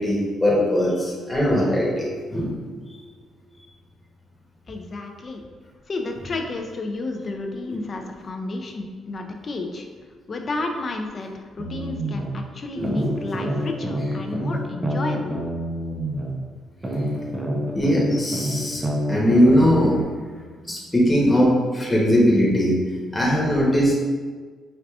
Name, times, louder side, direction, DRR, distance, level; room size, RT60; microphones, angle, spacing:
voice 1, 0.0-2.5 12.8-13.0 17.7-20.0 20.6-22.8 23.1-24.0, equal, 10° left, -6 dB, 0.9 m, -20 dB
voice 2, 4.7-5.4 5.9-9.9 10.3-15.3, left 2 dB, 40° left, 3 dB, 0.3 m, -31 dB
sound 1, 11.6-12.3 12.8-16.3 16.8-20.0, equal, 20° right, 0.5 m, -27 dB
4.6 x 2.4 x 2.4 m, 1.5 s
cardioid pair, 90°, 0 cm